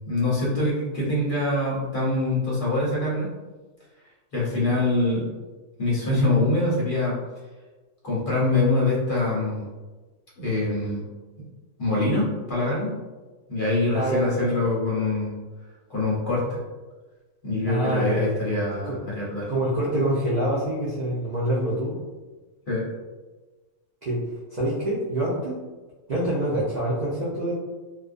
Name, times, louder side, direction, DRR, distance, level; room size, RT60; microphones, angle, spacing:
voice 1, 0.1-3.3 4.3-5.3 5.8-7.1 8.0-9.7 10.4-11.0 11.8-12.9 13.5-15.3 15.9-16.6 17.4-19.5 22.7-22.9, left 2 dB, 50° left, -6 dB, 0.7 m, -24 dB
voice 2, 13.9-14.4 17.6-18.4 18.8-19.0 19.5-22.0 24.0-24.2 24.5-25.6 26.1-27.5, right 1 dB, 75° right, -7 dB, 0.4 m, -26 dB
2.3 x 2.2 x 2.4 m, 1.2 s
omnidirectional pair, 1.4 m